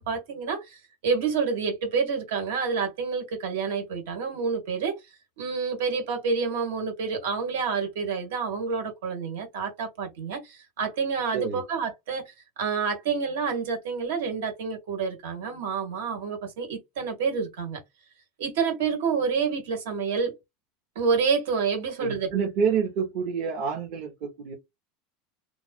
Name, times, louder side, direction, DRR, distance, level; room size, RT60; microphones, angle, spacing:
voice 1, 0.0-5.0 5.4-17.8 18.4-20.4 20.9-22.3, right 5 dB, 80° right, 1.7 m, -28 dB
voice 2, 22.0-24.5, right 6 dB, 45° right, 0.9 m, -28 dB
3.2 x 2.0 x 3.6 m
supercardioid pair, 170°, 0 cm